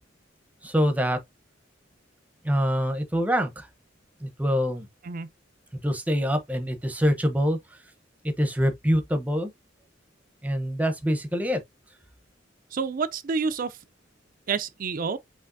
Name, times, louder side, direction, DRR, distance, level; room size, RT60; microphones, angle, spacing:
voice 1, 0.6-1.2 2.4-3.7 4.2-4.9 5.8-7.6 8.4-9.5 10.4-11.6, equal, 10° right, 0.8 m, -25 dB
voice 2, 12.7-13.8 14.5-15.2, right 5 dB, 45° right, 0.4 m, -28 dB
5.6 x 3.0 x 2.6 m
head